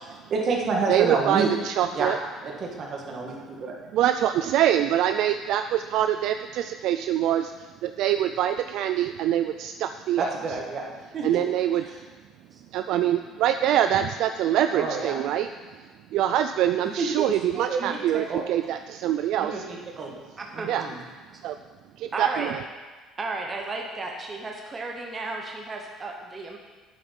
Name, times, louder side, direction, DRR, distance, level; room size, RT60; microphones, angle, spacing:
voice 1, 0.0-1.5 1.9-2.1 2.4-3.7 10.2-10.9 11.1-11.4 11.8-12.0 14.7-15.2 17.0-18.4 19.4-20.1 20.5-21.0, right 4 dB, 40° right, 0 dB, 1.7 m, -29 dB
voice 2, 0.9-2.2 3.9-7.5 7.8-10.3 11.2-11.8 12.7-15.5 16.1-19.6 20.7-20.9 21.4-21.5 22.0-22.6, right 11 dB, 60° right, 8 dB, 0.3 m, -24 dB
voice 3, 20.4-20.7 22.1-22.5 23.2-26.6, right 3 dB, 20° right, 1 dB, 0.9 m, -33 dB
9.2 x 8.0 x 5.3 m, 1.4 s
cardioid pair, 165°, 0 cm